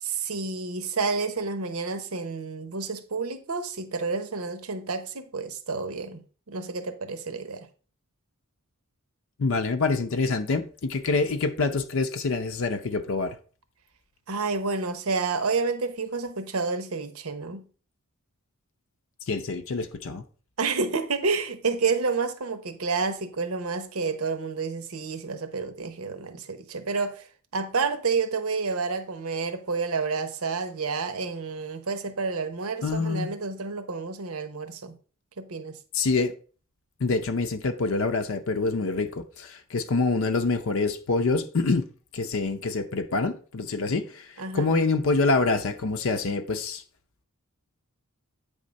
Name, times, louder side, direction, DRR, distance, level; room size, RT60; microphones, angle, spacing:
voice 1, 0.0-7.7 14.3-17.6 20.6-27.3 27.5-35.0 35.4-35.8 44.4-44.7, right 4 dB, 75° right, 0.9 m, -29 dB
voice 2, 9.4-13.4 19.3-20.2 32.8-33.3 35.9-36.3 37.0-41.9 42.1-46.8, left 3 dB, 65° left, 0.6 m, -26 dB
8.4 x 3.6 x 5.2 m
head